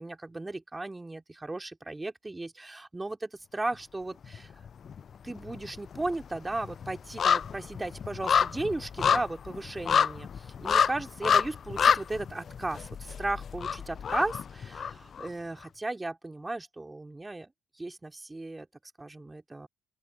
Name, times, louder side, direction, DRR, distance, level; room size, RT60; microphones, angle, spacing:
voice 1, 0.0-4.5 5.2-17.5 17.8-18.7 19.0-19.7, right 2 dB, 20° right, 3.0 m, -36 dB
sound 1, 4.2-5.0 5.3-15.3 15.6-15.7, left 7 dB, 50° left, 0.5 m, -28 dB
open air
hypercardioid pair, 55°, 0 cm